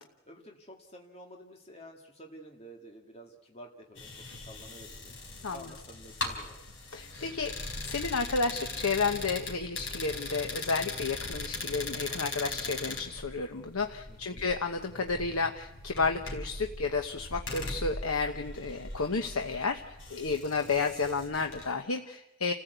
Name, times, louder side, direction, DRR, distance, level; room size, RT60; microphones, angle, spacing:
voice 1, 0.3-5.2 5.5-6.6 14.1-14.5 20.7-20.9, equal, 30° left, 1 dB, 2.0 m, -50 dB
sound 1, 4.0-21.7, left 2 dB, 65° left, 4.5 m, -40 dB
voice 2, 6.9-7.5 7.8-22.5, left 4 dB, 90° left, 5 dB, 1.0 m, -31 dB
30.0 x 15.0 x 8.1 m, 0.96 s
head